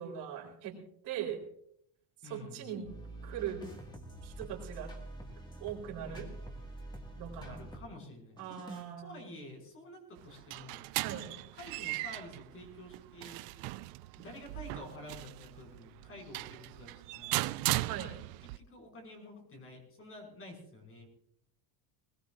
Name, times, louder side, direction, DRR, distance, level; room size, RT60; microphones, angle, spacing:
voice 1, 0.0-1.4 2.2-2.9 3.2-3.7 4.2-5.0 5.6-6.3 7.2-7.7 8.4-9.2 10.9-11.4 17.9-18.1, right 9 dB, 60° right, 0 dB, 4.1 m, -40 dB
voice 2, 2.2-2.9 6.1-6.3 7.4-8.4 9.0-10.9 11.3-13.4 14.2-17.6 18.6-21.1, left 1 dB, 30° left, 1 dB, 5.6 m, -50 dB
sound 1, 2.8-7.9 8.4-8.9, right 1 dB, 10° left, 1.9 m, -46 dB
sound 2, 10.2-18.6, right 19 dB, 85° right, 0.6 m, -38 dB
21.0 x 19.5 x 2.5 m, 0.69 s
cardioid pair, 170°, 45 cm